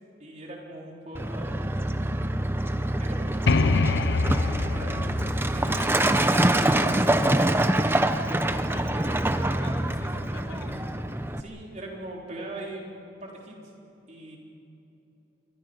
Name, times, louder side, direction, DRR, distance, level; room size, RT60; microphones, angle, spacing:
voice 1, 0.2-1.7 3.0-3.7 4.5-6.2 11.4-13.6 14.1-14.4, right 1 dB, 40° right, -2 dB, 4.0 m, -41 dB
Truck, 1.1-11.4, right 1 dB, 10° right, 0.7 m, -25 dB
sound 1, 3.5-7.1, left 3 dB, 65° left, 0.6 m, -26 dB
voice 2, 5.6-7.8 8.4-11.1, left 2 dB, 85° left, 0 dB, 3.6 m, -44 dB
28.5 x 23.5 x 5.3 m, 2.9 s
head